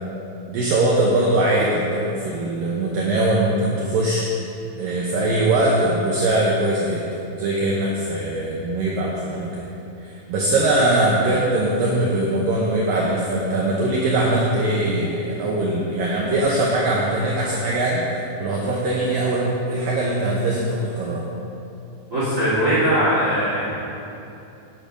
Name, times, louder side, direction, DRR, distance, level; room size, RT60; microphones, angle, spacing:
voice 1, 0.5-4.3 4.8-7.0 7.3-9.7 10.0-18.0 18.4-21.3, right 1 dB, 85° right, -4 dB, 2.0 m, -21 dB
voice 2, 22.1-23.7, equal, 45° right, -9 dB, 1.0 m, -20 dB
8.9 x 8.8 x 5.1 m, 2.8 s
omnidirectional pair, 5.3 m